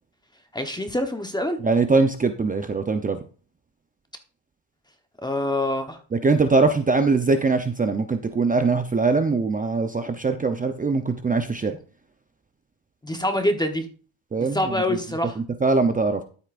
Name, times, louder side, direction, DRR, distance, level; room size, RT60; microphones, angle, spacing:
voice 1, 0.5-1.6 5.2-6.0 13.0-13.9 14.5-15.4, left 1 dB, 10° left, 6 dB, 1.0 m, -25 dB
voice 2, 1.6-3.2 6.1-11.8 14.3-15.0 15.4-16.2, right 3 dB, 15° right, 7 dB, 0.7 m, -22 dB
12.5 x 8.2 x 2.5 m, 0.39 s
cardioid pair, 120°, 49 cm